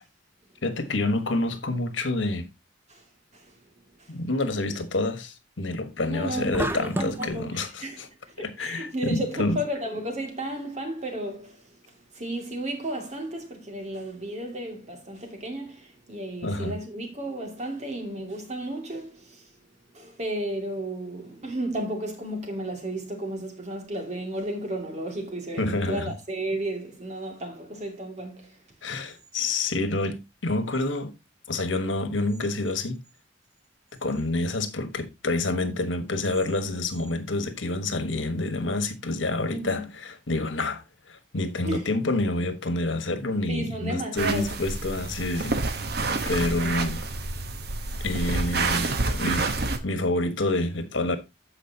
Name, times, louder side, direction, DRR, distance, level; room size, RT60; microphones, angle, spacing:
voice 1, 0.6-2.5 4.1-8.1 8.4-9.6 16.4-16.8 25.6-26.1 28.8-31.1 31.5-33.0 34.0-45.8 46.3-47.0 48.0-49.5 49.8-51.2, left 2 dB, 90° left, 1.4 m, -28 dB
voice 2, 6.1-19.5 19.9-28.6 28.9-29.0 39.5-39.9 41.6-41.9 43.5-44.6 46.4-46.7, right 1 dB, 35° right, 2.4 m, -33 dB
sound 1, 6.5-7.4, right 1 dB, 10° right, 0.7 m, -30 dB
sound 2, 44.2-49.8, right 3 dB, 55° right, 1.0 m, -28 dB
14.5 x 5.0 x 2.8 m
head